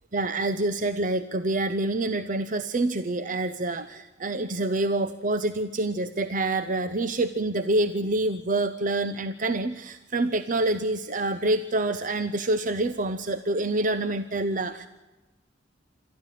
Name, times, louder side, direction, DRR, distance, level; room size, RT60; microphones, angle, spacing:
voice 1, 0.1-14.9, right 2 dB, 45° right, 11 dB, 0.8 m, -27 dB
28.0 x 14.0 x 7.6 m, 1.1 s
head